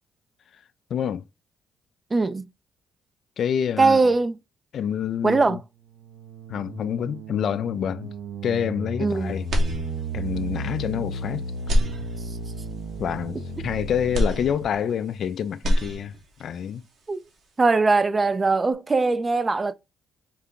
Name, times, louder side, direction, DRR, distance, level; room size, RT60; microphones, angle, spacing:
voice 1, 0.9-1.2 3.4-4.0 4.7-5.6 6.5-8.1 8.4-9.5 10.1-11.4 13.0-16.8, left 8 dB, 65° left, 0.3 m, -27 dB
voice 2, 2.1-2.4 3.8-4.4 5.2-5.6 9.0-9.4 17.1-17.2 17.6-19.7, right 3 dB, 30° right, 0.4 m, -21 dB
sound 1, 5.9-14.6, right 2 dB, 80° right, 1.2 m, -34 dB
sound 2, 9.5-10.4 10.8-10.9 11.6-12.6 14.1-15.2 15.5-16.4, equal, 65° right, 1.4 m, -26 dB
4.6 x 2.2 x 3.7 m
supercardioid pair, 60°, 0 cm